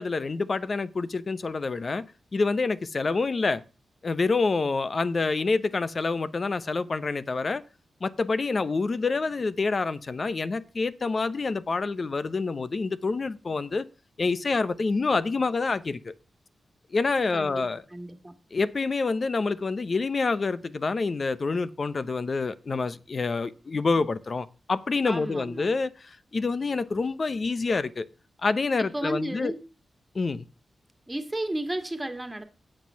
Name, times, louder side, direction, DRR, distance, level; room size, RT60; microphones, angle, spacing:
voice 1, 0.0-2.1 2.3-3.6 4.0-7.6 8.0-13.9 14.2-16.1 16.9-17.8 18.5-28.1 28.4-29.5 30.1-30.5, left 4 dB, 45° left, 0.7 m, -27 dB
voice 2, 17.3-17.6 17.9-18.4 25.0-25.7 28.8-29.6 31.1-32.4, right 1 dB, 15° right, 1.9 m, -33 dB
8.9 x 7.6 x 5.6 m
wide cardioid pair, 90°, 0 cm